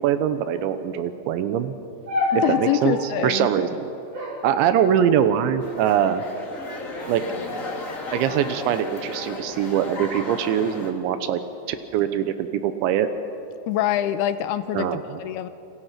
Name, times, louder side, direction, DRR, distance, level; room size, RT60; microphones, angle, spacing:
voice 1, 0.0-1.7 2.6-3.0 3.2-3.9 4.4-6.2 7.1-7.2 8.1-11.4 11.7-13.1 14.7-15.2, right 9 dB, 90° right, 10 dB, 3.4 m, -23 dB
sound 1, 2.1-3.3 4.1-5.3 6.1-6.6 7.0-7.5 8.2-9.5 10.3-10.7, left 2 dB, 35° right, 7.9 m, -31 dB
voice 2, 2.4-3.5 13.7-14.9 15.2-15.5, left 11 dB, 80° left, 11 dB, 2.5 m, -24 dB
sound 2, 5.6-10.9, left 2 dB, 25° left, 1.9 m, -34 dB
29.0 x 27.0 x 5.9 m, 2.8 s
omnidirectional pair, 5.1 m